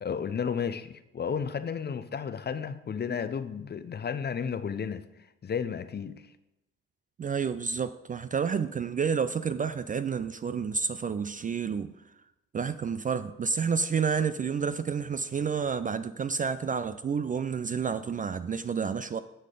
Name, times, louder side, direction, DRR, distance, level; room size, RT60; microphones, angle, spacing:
voice 1, 0.0-5.1 5.4-6.3, left 7 dB, 30° left, 0.7 m, -33 dB
voice 2, 7.2-11.9 12.5-19.2, right 6 dB, 25° right, 0.4 m, -30 dB
9.9 x 6.5 x 3.9 m
hypercardioid pair, 55°, 32 cm